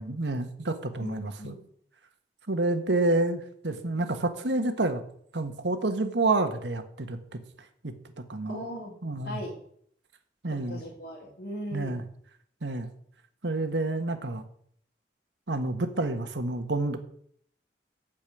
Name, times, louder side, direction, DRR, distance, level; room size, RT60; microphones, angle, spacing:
voice 1, 0.0-1.6 2.5-5.0 5.3-7.4 7.8-7.9 8.3-8.6 9.0-9.4 10.4-10.8 11.7-12.0 12.6-12.9 13.4-14.4 15.5-17.0, right 2 dB, 85° right, 7 dB, 1.5 m, -28 dB
voice 2, 1.0-1.6 8.5-8.9 9.2-9.6 10.5-12.0, equal, 75° left, -7 dB, 3.7 m, -38 dB
15.0 x 5.2 x 9.1 m, 0.63 s
head